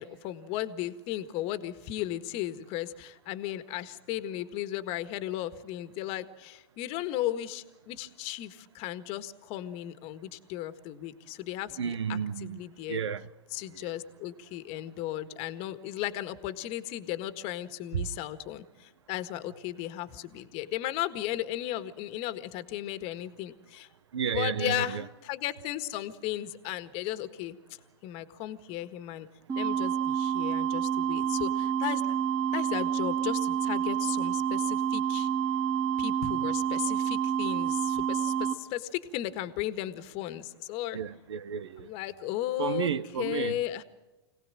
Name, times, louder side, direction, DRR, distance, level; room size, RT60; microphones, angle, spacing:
voice 1, 0.0-13.0 13.5-23.9 24.3-27.6 28.0-29.3 29.5-32.0 32.5-35.3 36.0-41.0 41.8-43.8, left 13 dB, 45° left, 1.7 m, -35 dB
voice 2, 11.8-12.6 12.9-13.3 13.8-13.9 24.1-25.0 40.9-41.9 42.6-43.6, right 7 dB, 85° right, 1.1 m, -32 dB
sound 1, 29.5-38.5, right 8 dB, 25° right, 2.9 m, -28 dB
25.5 x 18.0 x 7.6 m
hypercardioid pair, 125°, 14 cm